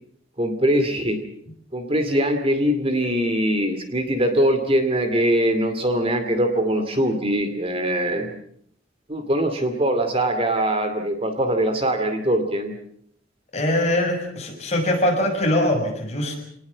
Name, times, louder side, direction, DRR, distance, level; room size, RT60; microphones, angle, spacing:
voice 1, 0.4-1.2 1.7-8.4 9.1-12.8, right 1 dB, 30° right, 7 dB, 2.4 m, -22 dB
voice 2, 13.5-16.4, left 1 dB, 35° left, 1 dB, 6.7 m, -22 dB
26.5 x 19.5 x 7.3 m, 0.69 s
head